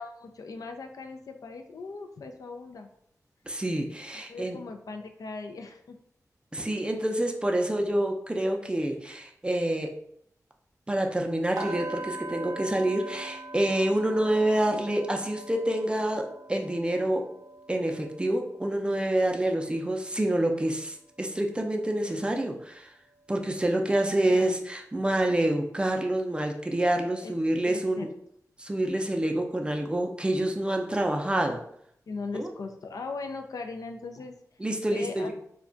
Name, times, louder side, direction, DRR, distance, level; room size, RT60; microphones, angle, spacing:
voice 1, 0.0-2.9 4.3-6.0 24.3-24.5 27.2-28.1 32.1-34.4 34.9-35.3, left 4 dB, 70° left, 5 dB, 0.3 m, -39 dB
voice 2, 3.5-4.6 6.5-9.9 10.9-17.3 17.7-22.9 23.3-28.1 28.6-31.6 32.3-32.5 34.6-35.3, right 1 dB, 15° right, 2 dB, 0.4 m, -27 dB
sound 1, 11.6-21.5 21.8-22.1 22.5-22.7, right 2 dB, 65° right, 0.5 m, -43 dB
2.3 x 2.2 x 3.7 m, 0.69 s
cardioid pair, 60°, 6 cm